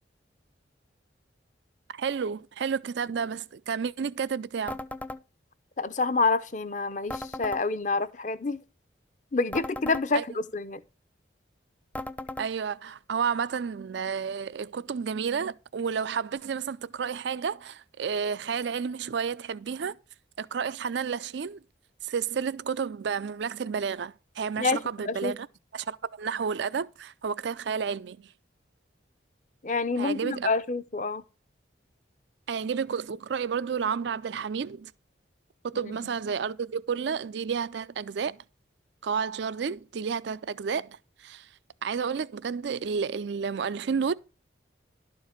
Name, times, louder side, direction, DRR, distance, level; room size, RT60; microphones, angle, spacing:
voice 1, 1.9-4.8 10.1-10.2 12.4-19.9 20.4-21.6 22.0-25.5 25.7-28.2 30.0-30.5 32.5-34.9 35.6-38.4 39.0-41.5 41.8-44.1, right 6 dB, 70° right, 0.4 m, -31 dB
sound 1, 4.7-5.2 7.1-7.6 9.5-10.1 11.9-12.5, left 1 dB, 10° left, 0.4 m, -36 dB
voice 2, 5.8-8.6 9.3-10.8 24.6-25.3 29.6-31.2, left 3 dB, 40° left, 0.7 m, -28 dB
12.0 x 4.5 x 6.5 m
head